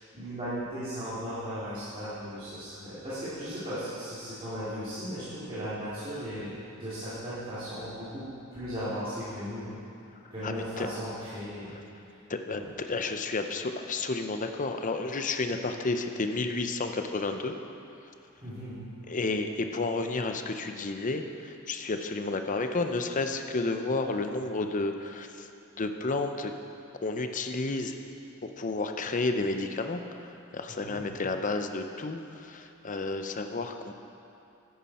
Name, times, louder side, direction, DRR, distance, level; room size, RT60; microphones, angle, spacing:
voice 1, 0.1-9.7 10.3-11.7 12.0-12.1 12.5-12.7 18.4-18.8 30.7-31.0, equal, 25° right, -13 dB, 2.9 m, -37 dB
voice 2, 10.4-10.9 11.7-11.8 12.3-17.5 19.1-25.5 25.8-26.5 27.0-28.0 28.6-30.0 30.5-33.9, left 3 dB, 35° left, 6 dB, 0.6 m, -31 dB
13.0 x 9.6 x 4.3 m, 2.7 s
head